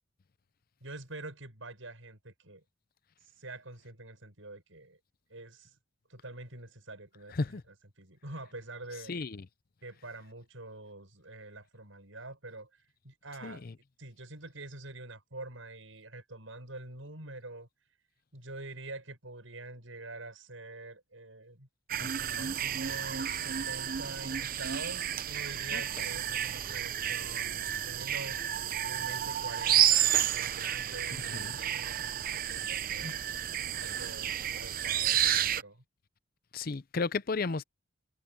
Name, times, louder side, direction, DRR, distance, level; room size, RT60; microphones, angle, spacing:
voice 1, 0.8-2.6 3.2-5.0 5.3-5.8 6.1-7.4 8.0-9.1 9.8-13.7 14.0-17.7 18.3-21.7 22.0-33.3 33.7-34.3 34.6-35.8, right 2 dB, 75° right, 7.3 m, -46 dB
voice 2, 9.1-9.5 13.4-13.7 22.0-22.6 25.7-26.0 31.3-31.6 33.0-33.1 36.5-37.6, left 4 dB, 45° left, 0.6 m, -35 dB
sound 1, 21.9-35.6, right 10 dB, 45° right, 0.7 m, -31 dB
head